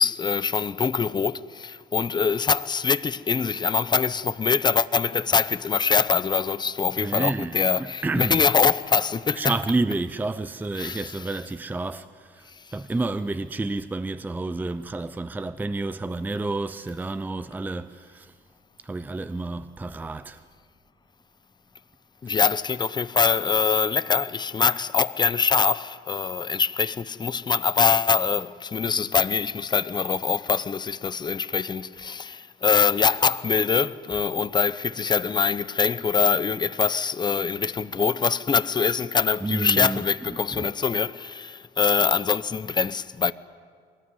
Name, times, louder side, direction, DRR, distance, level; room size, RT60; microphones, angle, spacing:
voice 1, 0.0-9.5 10.8-11.4 12.6-12.7 22.2-43.3, left 5 dB, 25° left, 0.7 m, -23 dB
voice 2, 7.0-8.5 9.3-12.4 12.7-18.3 18.8-20.4 22.3-22.5 39.4-40.7, right 2 dB, 10° right, 0.6 m, -30 dB
23.0 x 19.0 x 9.6 m
cardioid pair, 110°, 17 cm